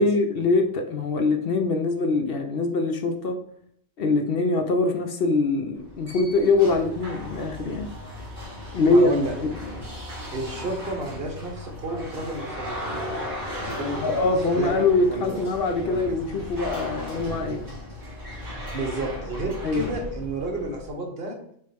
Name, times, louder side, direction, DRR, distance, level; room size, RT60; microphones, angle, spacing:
voice 1, 0.0-3.4 4.0-7.9 8.7-9.1 9.4-9.5 14.0-17.6 19.6-19.9, left 3 dB, 60° left, 5 dB, 0.7 m, -23 dB
sound 1, 5.7-20.9, left 1 dB, 35° right, 1.8 m, -36 dB
voice 2, 8.8-9.3 10.3-12.8 13.8-14.7 15.1-15.5 15.8-16.0 18.7-21.4, right 1 dB, 50° right, 1 dB, 1.3 m, -31 dB
6.4 x 2.5 x 3.4 m, 0.68 s
omnidirectional pair, 1.3 m